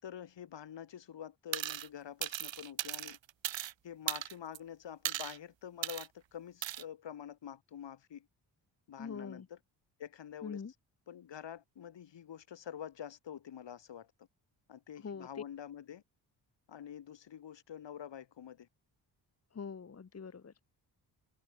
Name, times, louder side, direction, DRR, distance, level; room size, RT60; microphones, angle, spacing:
voice 1, 0.0-3.2 3.8-8.3 8.9-9.6 10.0-10.6 11.1-14.1 14.7-16.0 16.7-18.7, left 9 dB, 70° left, 5.8 m, -47 dB
sound 1, 1.5-1.9 2.2-3.7 4.1-4.6 5.0-5.4 5.8-6.1 6.6-6.8, right 12 dB, 85° right, 1.8 m, -37 dB
voice 2, 9.0-9.5 10.4-10.7 15.0-15.4 19.5-20.6, left 5 dB, 35° left, 1.6 m, -43 dB
cardioid pair, 85°, 44 cm